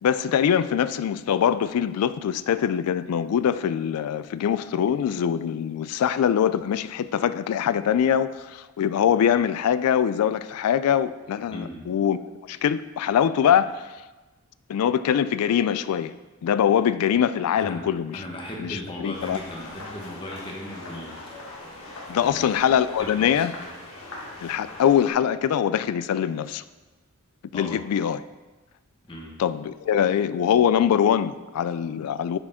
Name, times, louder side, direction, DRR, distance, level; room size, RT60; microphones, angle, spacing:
voice 1, 0.0-12.2 12.5-13.9 14.7-16.1 16.4-18.2 18.6-19.4 22.1-23.5 24.4-26.6 27.5-28.2 29.4-32.4, left 8 dB, 85° left, 0.3 m, -23 dB
voice 2, 11.5-11.9 17.6-21.2 22.2-22.5 22.8-23.6 27.5-27.8 29.1-29.4, left 1 dB, 25° left, 1.2 m, -37 dB
sound 1, 19.1-25.1, left 2 dB, 70° left, 1.4 m, -41 dB
9.7 x 5.0 x 3.6 m
head